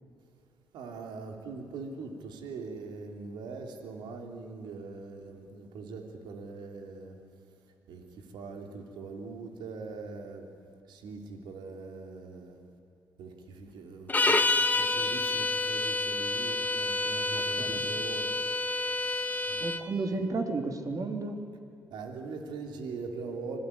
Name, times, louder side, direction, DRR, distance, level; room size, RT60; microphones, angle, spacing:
voice 1, 0.7-7.2 7.9-10.5 10.9-12.6 13.2-18.3 19.5-19.6 21.9-23.6, right 4 dB, 75° right, 4 dB, 3.0 m, -42 dB
sound 1, 14.1-19.9, left 3 dB, 20° left, 2.0 m, -28 dB
voice 2, 17.4-17.9 19.6-21.4, right 3 dB, 50° right, 5 dB, 3.5 m, -33 dB
25.5 x 19.0 x 9.9 m, 2.5 s
supercardioid pair, 50°, 8 cm